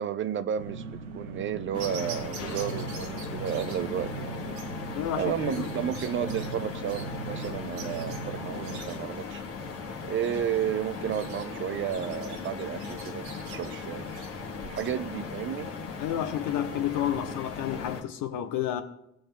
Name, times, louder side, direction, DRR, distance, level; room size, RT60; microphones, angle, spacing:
voice 1, 0.0-4.6 5.1-9.4 10.0-14.1 14.6-15.7, right 9 dB, 35° right, 0.4 m, -32 dB
sound 1, 0.6-8.8, right 3 dB, 90° right, 0.9 m, -39 dB
sound 2, 1.7-18.0, left 5 dB, 40° left, 1.6 m, -38 dB
sound 3, 1.8-14.9, right 5 dB, 75° right, 1.4 m, -47 dB
voice 2, 4.9-5.7 16.0-18.8, left 11 dB, 60° left, 1.1 m, -30 dB
17.0 x 7.7 x 2.2 m
hypercardioid pair, 55°, 35 cm